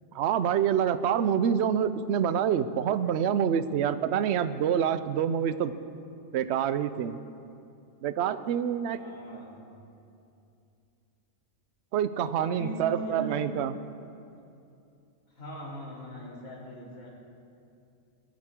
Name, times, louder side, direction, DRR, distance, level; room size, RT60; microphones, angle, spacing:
voice 1, 0.1-5.7 6.3-7.2 8.0-9.0 11.9-13.7, right 8 dB, 60° right, 12 dB, 0.8 m, -26 dB
voice 2, 9.0-9.7 12.4-13.5 15.4-17.2, right 2 dB, 85° left, -6 dB, 3.7 m, -39 dB
20.5 x 15.0 x 3.7 m, 2.6 s
omnidirectional pair, 1.4 m